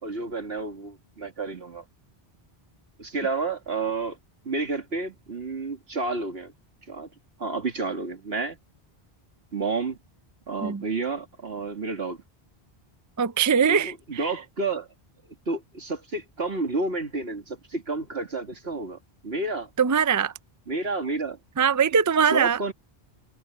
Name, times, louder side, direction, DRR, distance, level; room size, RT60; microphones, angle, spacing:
voice 1, 0.0-1.8 3.0-4.2 4.4-6.5 6.9-7.1 7.4-8.6 9.5-10.0 10.5-12.2 13.7-14.9 15.5-19.0 19.2-19.7 20.7-21.4 22.2-22.7, right 3 dB, 75° right, 2.7 m, -30 dB
voice 2, 13.2-14.3 19.8-20.3 21.6-22.6, right 7 dB, 30° right, 0.3 m, -22 dB
omnidirectional pair, 1.1 m